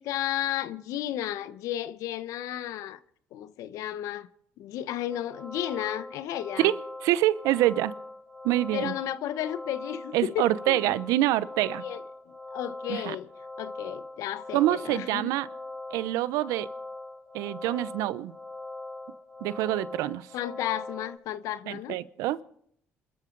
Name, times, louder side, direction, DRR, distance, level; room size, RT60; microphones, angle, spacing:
voice 1, 0.0-3.0 3.3-4.3 4.6-6.7 8.7-10.9 11.8-13.3 13.6-15.3 20.3-22.0, left 12 dB, 80° left, 1.0 m, -33 dB
sound 1, 5.1-21.2, left 2 dB, 30° left, 6.9 m, -41 dB
voice 2, 7.0-7.9 8.4-8.9 10.1-11.9 12.9-13.2 14.5-15.5 15.9-16.7 17.3-18.3 19.4-20.3 21.7-22.4, right 15 dB, 85° right, 0.7 m, -26 dB
27.5 x 13.0 x 3.9 m
supercardioid pair, 65°, 6 cm